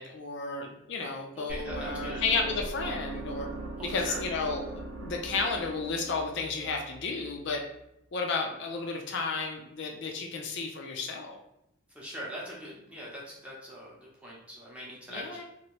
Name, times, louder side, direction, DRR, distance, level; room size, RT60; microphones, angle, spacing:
voice 1, 0.0-3.5 3.8-4.7 5.0-7.6 8.1-11.4 15.1-15.4, left 4 dB, 55° left, 2 dB, 0.4 m, -32 dB
voice 2, 1.3-2.2 3.8-4.2 11.9-14.0 14.2-15.4, equal, 5° right, -5 dB, 0.7 m, -42 dB
sound 1, 1.5-7.6, right 2 dB, 75° right, 0.6 m, -40 dB
2.8 x 2.6 x 3.0 m, 0.82 s
head